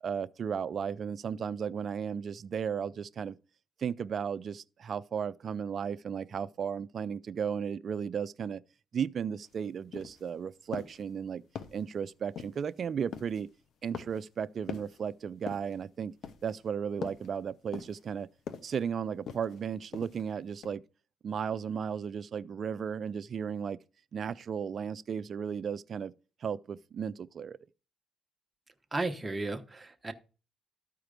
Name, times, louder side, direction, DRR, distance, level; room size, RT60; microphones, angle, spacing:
voice 1, 0.0-3.4 3.8-8.6 8.9-11.4 11.7-13.5 13.8-16.1 16.4-18.3 18.6-20.8 21.2-23.8 24.1-26.1 26.4-27.6, right 7 dB, 55° right, 0.4 m, -35 dB
sound 1, 9.4-9.5 9.9-10.3 10.7-11.0 11.5-11.9 12.4-12.7 13.1-13.4 13.9-14.3 14.7-15.0 15.5-15.8 16.2-16.6 17.0-17.3 17.7-18.1 18.5-18.8 19.3-19.6 19.9-20.3 20.6-20.7, left 7 dB, 70° left, 0.9 m, -42 dB
voice 2, 28.9-30.1, right 2 dB, 20° right, 1.0 m, -34 dB
13.0 x 4.7 x 5.1 m
cardioid pair, 90°, 0 cm